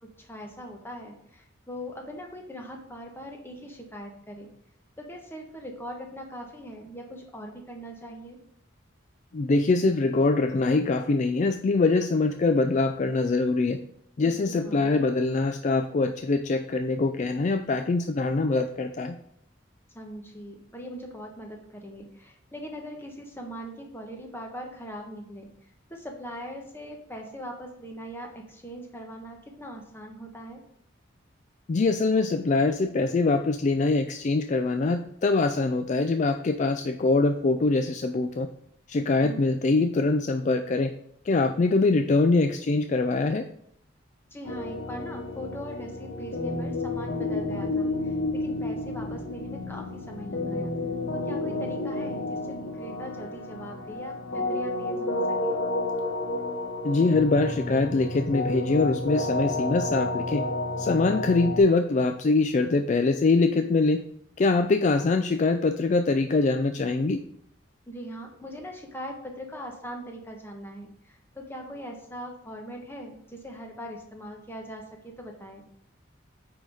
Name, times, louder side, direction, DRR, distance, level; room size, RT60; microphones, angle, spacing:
voice 1, 0.0-4.5 5.0-8.4 14.2-15.0 19.9-25.5 25.9-30.6 39.2-39.5 44.3-50.7 51.3-55.6 64.7-65.1 67.9-75.7, equal, 10° left, 1 dB, 1.2 m, -41 dB
voice 2, 9.3-13.8 14.2-19.1 31.7-38.5 38.9-40.9 41.3-43.4 56.8-60.4 60.8-64.0 64.4-67.2, left 3 dB, 40° left, 8 dB, 0.3 m, -23 dB
sound 1, 44.5-61.6, left 2 dB, 90° left, 0.9 m, -31 dB
9.0 x 4.0 x 4.8 m, 0.71 s
head